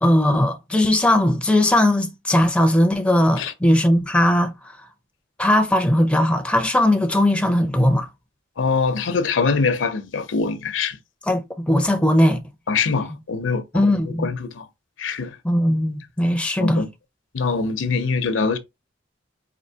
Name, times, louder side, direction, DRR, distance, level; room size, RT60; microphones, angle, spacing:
voice 1, 0.0-4.5 5.4-8.1 11.3-12.4 13.7-14.3 15.4-16.8, left 1 dB, 5° left, 0.4 m, -18 dB
voice 2, 8.6-11.0 12.7-14.7 15.0-15.4 16.6-16.9 17.3-18.6, left 4 dB, 75° left, 0.6 m, -23 dB
4.4 x 2.6 x 2.7 m
head